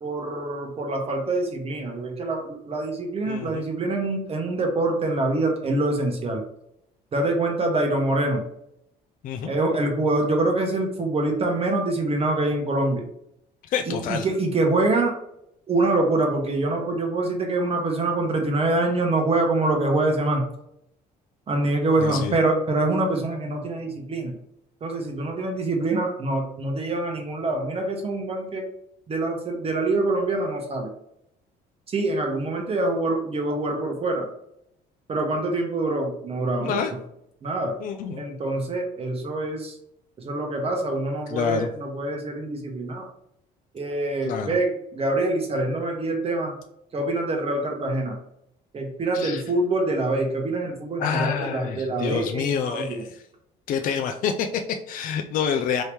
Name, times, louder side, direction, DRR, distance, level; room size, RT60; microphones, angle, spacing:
voice 1, 0.0-6.4 7.1-8.4 9.5-13.0 13.9-15.1 15.7-20.4 21.5-24.3 24.8-28.7 29.1-30.9 31.9-34.3 35.1-37.0 37.4-37.8 38.2-39.8 40.2-43.1 43.7-46.6 46.9-48.2 48.7-53.0, right 2 dB, 35° right, 2 dB, 0.9 m, -25 dB
voice 2, 3.3-3.6 9.2-9.5 13.7-14.3 22.0-22.4 36.6-36.9 37.8-38.3 41.3-41.7 44.2-44.6 49.1-49.4 51.0-53.1 53.7-55.8, left 7 dB, 55° left, 5 dB, 0.4 m, -27 dB
3.0 x 2.7 x 3.3 m, 0.77 s
cardioid pair, 110°, 17 cm